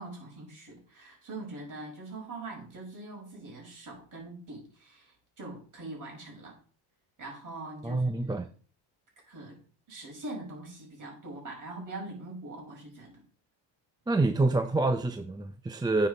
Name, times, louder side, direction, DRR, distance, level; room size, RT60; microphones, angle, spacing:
voice 1, 0.0-6.6 7.2-8.3 9.3-9.6 9.9-13.2, right 2 dB, 40° right, 5.8 m, -43 dB
voice 2, 7.8-8.5 14.1-16.1, right 2 dB, 10° right, 0.5 m, -27 dB
9.5 x 5.9 x 5.0 m
cardioid pair, 145°, 48 cm